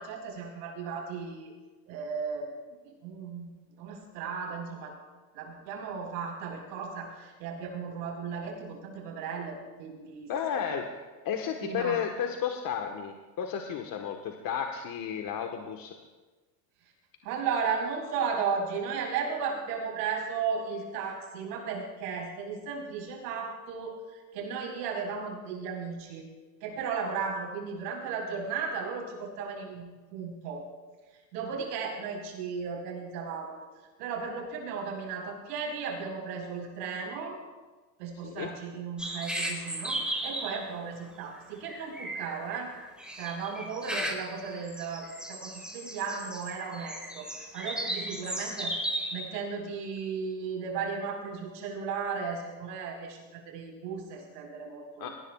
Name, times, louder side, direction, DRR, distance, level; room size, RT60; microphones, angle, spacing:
voice 1, 0.0-1.5 1.9-2.6 3.0-3.5 3.8-4.9 5.3-10.7 11.6-12.0 17.2-23.9 24.3-26.2 26.6-30.7 31.3-33.6 34.0-37.4 38.0-42.7 43.2-48.7 49.1-55.1, right 5 dB, 85° right, 0 dB, 4.7 m, -35 dB
voice 2, 10.3-15.9 38.2-38.5 43.9-44.1 55.0-55.1, left 8 dB, 45° left, 4 dB, 1.4 m, -33 dB
sound 1, 39.0-40.7 41.4-41.5 41.7-49.3, right 1 dB, ahead, 3.4 m, -36 dB
22.5 x 18.5 x 2.4 m, 1.3 s
supercardioid pair, 95°, 47 cm